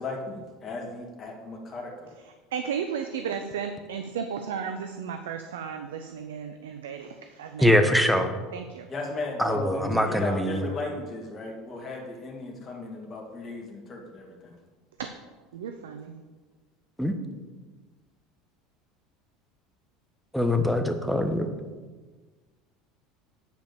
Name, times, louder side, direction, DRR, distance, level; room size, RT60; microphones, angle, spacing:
voice 1, 0.0-2.1 8.9-14.6, left 2 dB, 35° left, -2 dB, 2.5 m, -35 dB
voice 2, 2.5-7.7 8.5-8.9 15.0-15.1 15.5-16.2, right 7 dB, 75° right, 7 dB, 0.6 m, -34 dB
voice 3, 7.6-8.3 9.4-10.7 17.0-17.1 20.3-21.5, left 1 dB, ahead, 5 dB, 1.2 m, -23 dB
9.3 x 5.0 x 6.9 m, 1.4 s
hypercardioid pair, 75°, 0 cm